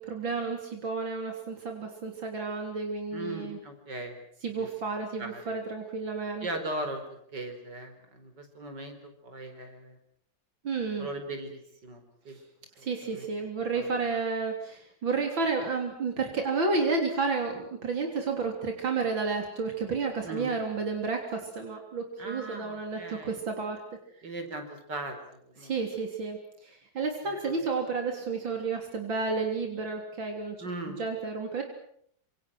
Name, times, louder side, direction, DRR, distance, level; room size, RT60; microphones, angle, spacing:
voice 1, 0.0-3.6 4.4-6.5 10.6-11.1 12.8-23.8 25.6-30.6 30.9-31.6, right 4 dB, 90° right, 3 dB, 4.1 m, -31 dB
voice 2, 3.1-4.2 4.5-4.7 5.2-5.6 6.4-10.0 11.0-12.4 12.8-13.3 13.7-13.9 20.2-20.5 22.2-23.4 24.2-25.7 27.2-27.6 30.6-31.0, right 1 dB, 65° right, 6 dB, 5.2 m, -39 dB
27.5 x 27.0 x 6.2 m, 0.67 s
omnidirectional pair, 2.0 m